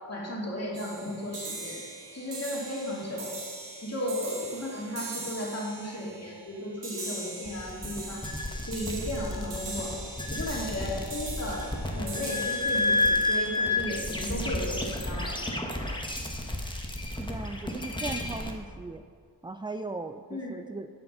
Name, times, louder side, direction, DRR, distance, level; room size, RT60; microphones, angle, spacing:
voice 1, 0.1-1.8 2.1-3.3 3.8-8.2 8.7-9.9 10.3-15.4 20.3-20.5, left 1 dB, 40° left, -4 dB, 2.8 m, -35 dB
sound 1, 0.7-14.2, right 3 dB, 85° right, 1.5 m, -42 dB
sound 2, 7.5-18.5, left 2 dB, 10° left, 1.4 m, -31 dB
voice 2, 17.2-19.0 19.4-20.9, right 3 dB, 15° right, 8 dB, 0.3 m, -38 dB
11.5 x 5.8 x 5.5 m, 2.2 s
wide cardioid pair, 55°, 41 cm